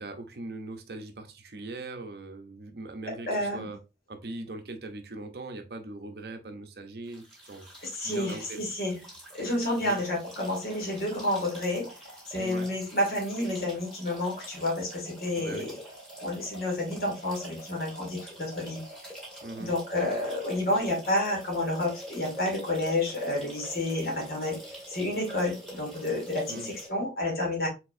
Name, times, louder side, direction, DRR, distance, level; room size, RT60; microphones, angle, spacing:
voice 1, 0.0-3.8 4.1-7.7 8.0-8.6 9.8-10.0 12.4-12.7 15.4-15.7 19.4-19.7 26.5-26.7, right 2 dB, 60° right, 0.7 m, -40 dB
voice 2, 3.1-3.7 7.8-9.0 9.3-11.9 12.3-15.8 16.2-18.8 19.6-27.7, left 1 dB, 55° left, 2.0 m, -30 dB
sound 1, 7.1-26.9, equal, 5° left, 2.0 m, -46 dB
4.4 x 4.1 x 2.6 m
head